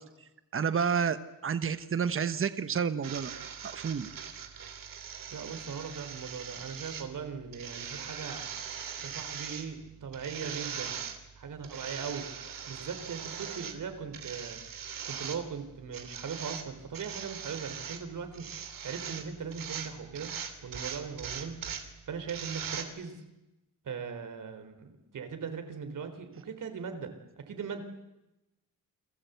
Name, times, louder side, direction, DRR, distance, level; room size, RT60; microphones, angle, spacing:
voice 1, 0.5-3.3 3.6-4.1, right 6 dB, 40° right, 11 dB, 1.2 m, -30 dB
sound 1, 3.0-22.8, right 7 dB, 85° right, 3.1 m, -41 dB
voice 2, 5.3-8.4 9.0-11.0 11.4-12.3 12.7-14.6 15.1-18.5 18.8-20.3 20.6-21.6 22.1-23.2 23.8-27.1 27.4-27.8, right 6 dB, 65° right, 7 dB, 4.1 m, -39 dB
30.0 x 21.0 x 8.3 m, 0.98 s
wide cardioid pair, 140°, 33 cm